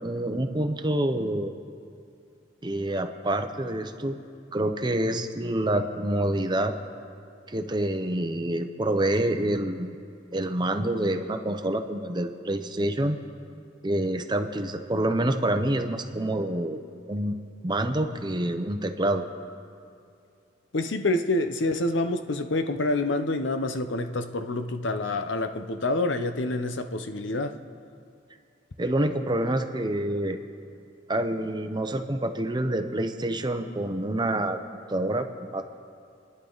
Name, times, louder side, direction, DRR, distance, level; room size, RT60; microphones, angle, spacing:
voice 1, 0.0-1.5 2.6-4.2 4.5-6.7 7.5-10.0 10.3-13.2 13.8-16.8 17.1-17.4 17.6-19.3 28.8-30.4 31.1-34.6 34.9-35.3 35.5-35.6, right 1 dB, 25° right, 6 dB, 0.8 m, -27 dB
voice 2, 20.7-27.6, left 2 dB, 70° left, 8 dB, 0.9 m, -27 dB
29.0 x 10.5 x 4.0 m, 2.4 s
head